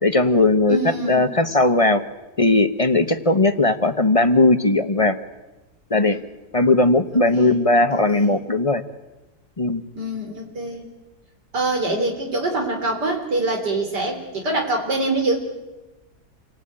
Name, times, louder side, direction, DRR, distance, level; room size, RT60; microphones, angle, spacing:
voice 1, 0.0-0.8 1.1-2.0 2.4-5.2 5.9-6.2 6.5-8.8 9.6-9.8, left 2 dB, 25° left, 9 dB, 0.9 m, -18 dB
voice 2, 0.7-1.3 6.1-6.2 7.3-7.6 7.9-8.4 10.0-10.9 11.5-15.4, right 2 dB, 85° right, 3 dB, 4.4 m, -25 dB
28.0 x 18.0 x 8.9 m, 1.1 s
omnidirectional pair, 1.8 m